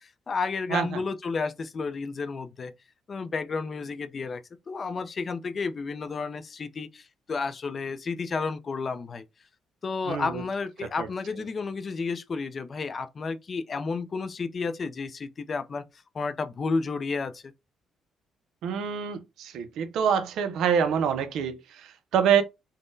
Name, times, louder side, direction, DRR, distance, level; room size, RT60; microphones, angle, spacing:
voice 1, 0.0-2.7 3.1-4.4 4.7-9.2 9.8-15.8 16.1-17.4, left 4 dB, 40° left, 0.4 m, -31 dB
voice 2, 0.7-1.0 10.1-10.4 10.8-11.1 18.6-22.4, right 7 dB, 80° right, 0.4 m, -26 dB
3.6 x 2.1 x 2.5 m
cardioid pair, 90°, 0 cm